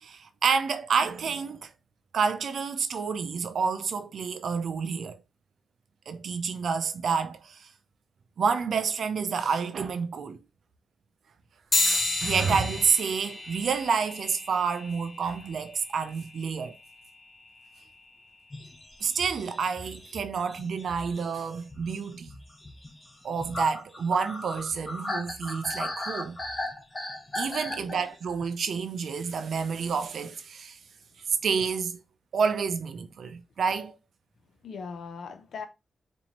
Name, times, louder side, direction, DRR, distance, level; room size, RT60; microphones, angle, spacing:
voice 1, 0.0-1.7 2.1-5.2 6.1-7.7 8.4-10.4 11.8-16.8 19.0-22.3 23.2-26.4 27.3-30.8 31.4-32.0 32.3-34.0, right 5 dB, 80° right, 0.5 m, -29 dB
sound 1, 11.7-21.5, left 2 dB, 45° left, 1.5 m, -35 dB
sound 2, 18.5-28.5, left 1 dB, 25° left, 1.1 m, -38 dB
voice 2, 27.7-28.1 34.6-35.7, left 5 dB, 80° left, 0.6 m, -40 dB
4.2 x 2.6 x 2.9 m
cardioid pair, 70°, 0 cm